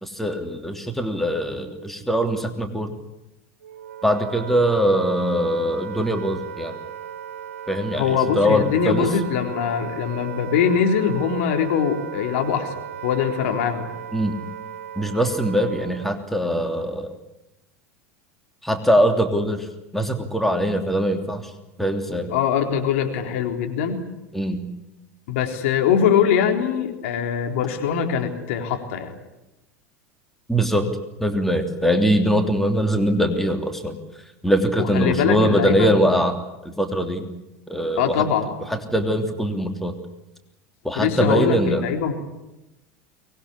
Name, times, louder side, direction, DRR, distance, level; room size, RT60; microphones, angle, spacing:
voice 1, 0.0-2.9 4.0-6.8 7.7-9.1 14.1-14.4 14.9-17.1 18.6-19.7 19.9-21.4 21.8-22.3 24.3-24.6 30.5-30.9 31.2-34.0 34.4-36.3 36.6-37.3 37.7-38.2 38.7-39.9 40.8-41.8, equal, 5° left, 6 dB, 3.2 m, -22 dB
Wind instrument woodwind instrument, 3.6-16.3, right 8 dB, 75° right, 2.0 m, -36 dB
voice 2, 8.0-12.7 13.0-13.9 22.3-24.0 25.3-29.1 34.8-36.0 38.0-38.5 38.9-39.1 41.0-42.1, left 7 dB, 65° left, 5 dB, 3.9 m, -22 dB
24.0 x 20.0 x 10.0 m, 0.95 s
hypercardioid pair, 80°, 8 cm